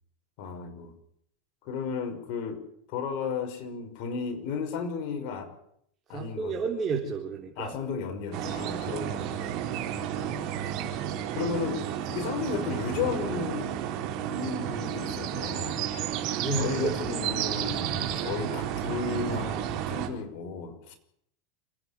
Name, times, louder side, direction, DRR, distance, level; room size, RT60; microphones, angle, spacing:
voice 1, 0.4-0.9 1.6-2.6 2.9-5.5 6.1-6.6 7.6-9.2 9.9-10.8 11.3-13.7 14.3-15.9 16.5-20.9, left 5 dB, 55° left, 5 dB, 5.7 m, -34 dB
voice 2, 6.1-7.7 9.2-9.6 16.4-16.9, right 4 dB, 25° right, -1 dB, 4.3 m, -31 dB
sound 1, 8.3-20.1, right 10 dB, 50° right, 4.6 m, -32 dB
28.5 x 10.5 x 9.9 m, 0.71 s
hypercardioid pair, 120°, 0 cm